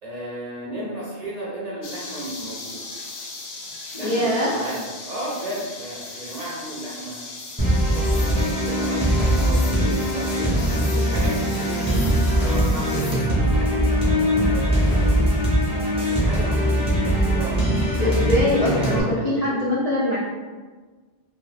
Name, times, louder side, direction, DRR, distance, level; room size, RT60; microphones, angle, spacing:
voice 1, 0.0-2.8 3.9-7.2 7.9-10.5 11.0-11.9 12.1-15.1 16.0-17.6 17.9-18.1 18.8-19.7, right 1 dB, 50° right, -5 dB, 0.6 m, -34 dB
sound 1, 1.8-13.1, left 3 dB, 85° left, 0.8 m, -37 dB
voice 2, 3.9-4.5 18.0-20.2, left 1 dB, 50° left, -7 dB, 0.4 m, -22 dB
sound 2, 7.6-19.0, equal, 5° right, 0.6 m, -21 dB
2.4 x 2.3 x 3.2 m, 1.4 s
omnidirectional pair, 1.1 m